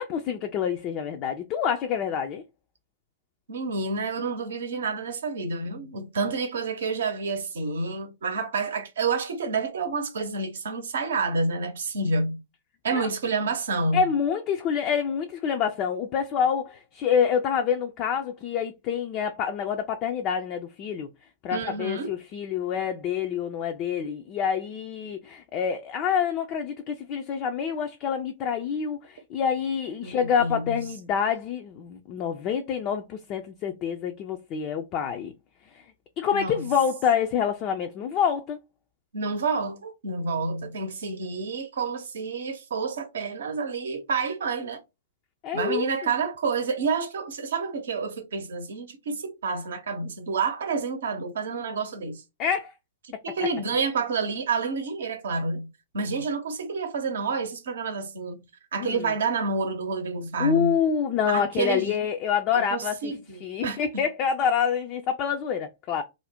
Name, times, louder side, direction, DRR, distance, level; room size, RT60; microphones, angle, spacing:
voice 1, 0.0-2.4 12.9-13.1 13.9-21.1 21.4-35.3 35.7-35.8 36.2-38.6 45.4-46.1 52.4-52.7 58.8-59.1 60.4-63.1 63.4-66.0, left 7 dB, 35° left, 0.4 m, -27 dB
voice 2, 3.5-12.4 12.8-14.0 21.5-22.1 30.0-30.9 36.3-36.6 39.1-44.8 45.5-52.2 53.2-55.7 55.9-58.4 58.7-60.8 61.3-62.0 62.5-64.0, right 4 dB, 70° right, 0.7 m, -29 dB
2.5 x 2.1 x 3.4 m
figure-of-eight pair, 110°, 0 cm